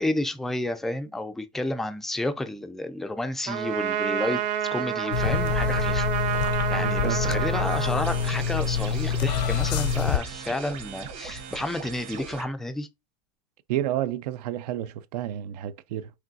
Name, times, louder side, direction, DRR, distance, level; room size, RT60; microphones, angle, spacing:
voice 1, 0.0-6.1 6.7-12.9, left 1 dB, ahead, 0.3 m, -31 dB
Trumpet, 3.5-8.7, right 10 dB, 40° right, 0.7 m, -29 dB
sound 1, 5.1-10.2, left 7 dB, 85° left, 0.7 m, -26 dB
voice 2, 6.8-7.5 13.7-16.1, right 12 dB, 75° right, 0.5 m, -31 dB
sound 2, 8.0-12.4, right 6 dB, 55° right, 1.7 m, -39 dB
5.0 x 3.0 x 2.6 m
supercardioid pair, 145°, 21 cm